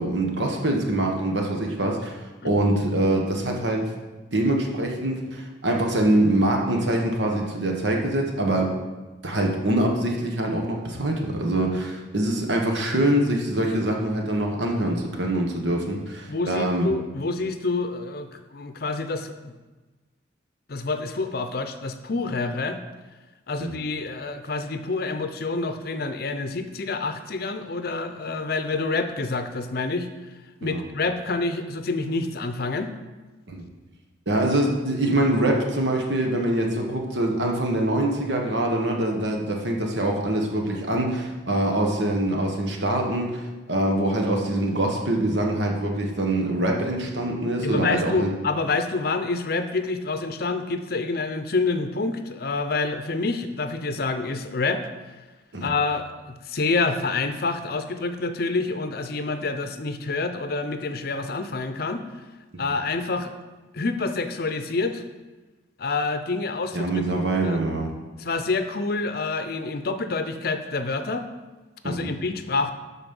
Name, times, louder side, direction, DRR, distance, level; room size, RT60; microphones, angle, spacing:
voice 1, 0.0-2.2 2.4-3.9 4.3-8.7 9.2-16.9 23.6-23.7 30.6-30.8 33.5-33.6 34.3-48.3 55.5-55.7 62.5-62.6 66.7-67.9 71.8-72.1, right 1 dB, 70° right, 1 dB, 1.4 m, -24 dB
voice 2, 16.3-19.5 20.7-22.8 23.5-30.1 30.6-32.9 47.6-54.8 55.6-62.0 62.6-63.3 63.7-65.0 65.8-66.9 67.2-67.6 68.2-71.3 71.8-72.7, left 3 dB, 55° left, 8 dB, 0.6 m, -27 dB
12.0 x 4.2 x 5.4 m, 1.2 s
head